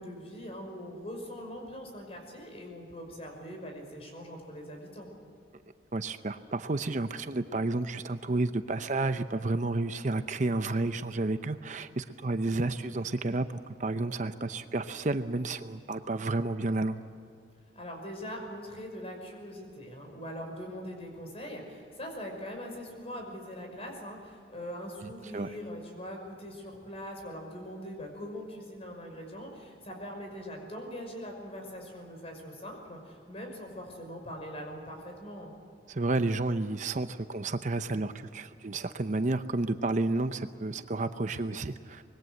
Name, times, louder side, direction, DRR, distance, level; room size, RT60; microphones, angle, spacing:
voice 1, 0.0-5.1 17.7-35.6, equal, 35° left, 2 dB, 5.7 m, -42 dB
voice 2, 5.9-17.0 25.3-25.5 35.9-42.0, right 2 dB, 45° right, 10 dB, 0.7 m, -31 dB
25.0 x 21.0 x 7.8 m, 2.4 s
head